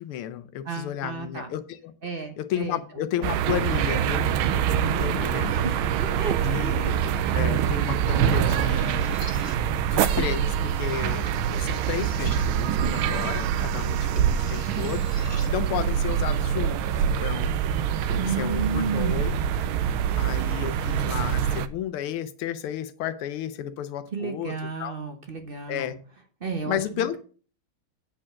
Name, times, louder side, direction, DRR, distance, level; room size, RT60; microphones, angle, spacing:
voice 1, 0.0-1.9 2.4-5.5 6.4-7.0 7.3-9.1 9.9-17.5 18.1-19.3 20.1-25.0 25.7-26.0 26.7-27.2, left 10 dB, 85° left, 11 dB, 1.6 m, -32 dB
voice 2, 0.6-1.5 2.0-2.8 4.7-7.2 13.7-14.3 18.2-19.4 24.1-25.9 26.4-27.2, right 5 dB, 50° right, 6 dB, 0.6 m, -33 dB
sound 1, 3.2-21.7, right 9 dB, 80° right, 1.5 m, -25 dB
sound 2, 8.0-18.3, equal, 15° left, 1.6 m, -45 dB
8.7 x 4.6 x 7.2 m, 0.40 s
omnidirectional pair, 2.3 m